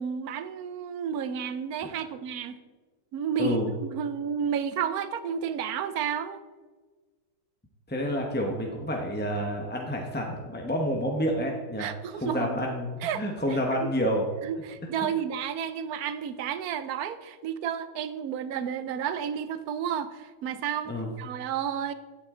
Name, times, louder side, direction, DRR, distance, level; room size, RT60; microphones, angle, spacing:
voice 1, 0.0-2.6 3.1-6.4 11.8-12.5 13.0-13.2 13.5-13.9 14.4-21.9, right 8 dB, 70° right, 12 dB, 0.9 m, -31 dB
voice 2, 3.4-3.7 7.9-14.3 20.9-21.1, equal, 10° left, 1 dB, 0.7 m, -29 dB
16.0 x 8.3 x 3.8 m, 1.4 s
omnidirectional pair, 2.2 m